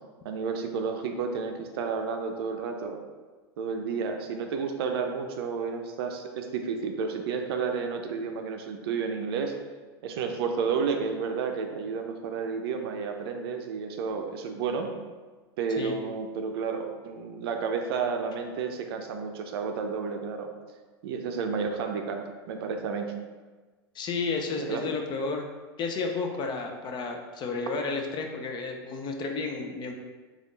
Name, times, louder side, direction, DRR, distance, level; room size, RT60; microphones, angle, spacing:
voice 1, 0.2-3.0 3.6-9.5 10.0-14.9 15.6-20.5 21.0-22.2 22.5-23.1 24.6-24.8, right 5 dB, 65° right, 4 dB, 0.5 m, -31 dB
voice 2, 23.9-25.5 25.8-29.9, left 4 dB, 35° left, 3 dB, 0.5 m, -32 dB
3.5 x 2.4 x 3.8 m, 1.3 s
hypercardioid pair, 95°, 14 cm